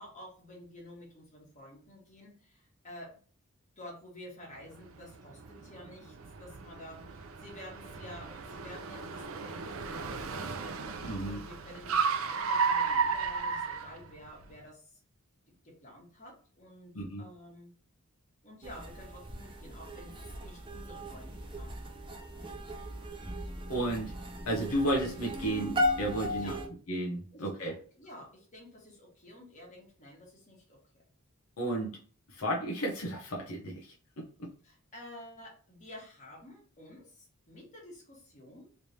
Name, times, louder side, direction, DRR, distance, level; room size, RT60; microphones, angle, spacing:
voice 1, 0.0-3.2 3.8-10.5 11.2-15.0 15.6-17.7 18.4-22.1 26.3-26.6 27.3-31.0 34.6-38.7, left 1 dB, 35° left, -3 dB, 1.5 m, -50 dB
Car, 4.6-14.5, right 5 dB, 70° right, 0.5 m, -34 dB
voice 2, 11.0-11.4 16.9-17.2 23.7-24.1 24.5-26.5 26.9-27.7 31.6-31.9 32.3-34.5, right 1 dB, 85° left, -1 dB, 0.8 m, -33 dB
sound 1, 18.6-26.7, left 1 dB, 25° right, 0.6 m, -37 dB
3.3 x 3.1 x 2.7 m, 0.41 s
head